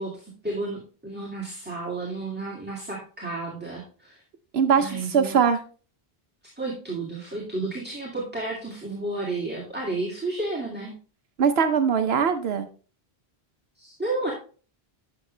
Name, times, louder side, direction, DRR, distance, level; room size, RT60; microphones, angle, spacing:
voice 1, 0.0-4.2 4.8-5.4 6.6-11.0 13.8-14.3, right 2 dB, 10° right, -3 dB, 2.2 m, -32 dB
voice 2, 4.5-5.6 11.4-12.7, right 6 dB, 75° right, 9 dB, 1.0 m, -21 dB
11.5 x 6.5 x 3.2 m, 0.38 s
omnidirectional pair, 1.0 m